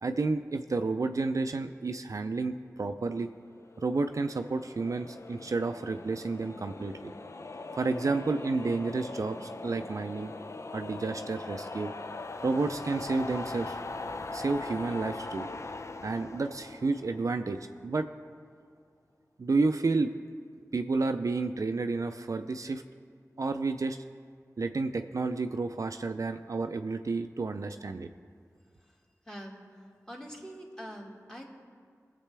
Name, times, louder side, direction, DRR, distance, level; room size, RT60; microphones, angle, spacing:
voice 1, 0.0-3.3 3.8-7.1 7.7-10.3 10.7-11.9 12.4-13.8 14.3-15.5 16.0-18.1 19.4-20.1 20.7-22.8 23.4-24.0 24.6-28.1, right 3 dB, 60° right, 7 dB, 0.4 m, -31 dB
sound 1, 3.6-17.9, left 3 dB, 50° left, 0.4 m, -41 dB
voice 2, 29.3-29.6 30.1-31.4, equal, 10° left, -2 dB, 2.0 m, -44 dB
19.0 x 7.5 x 3.4 m, 2.1 s
wide cardioid pair, 50°, 6 cm